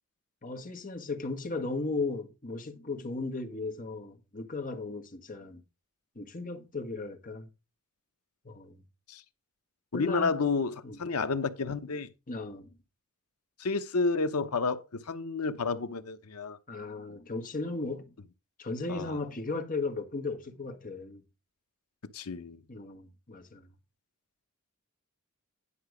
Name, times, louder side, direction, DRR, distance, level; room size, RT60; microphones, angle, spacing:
voice 1, 0.4-5.6 6.1-7.5 8.4-8.8 9.9-10.5 10.8-11.0 12.3-12.7 16.7-18.1 18.6-21.2 22.7-23.7, left 3 dB, 40° left, 1.5 m, -36 dB
voice 2, 9.9-12.1 13.6-16.6 18.9-19.2 22.1-22.6, left 4 dB, 85° left, 0.9 m, -30 dB
10.0 x 5.8 x 5.0 m
head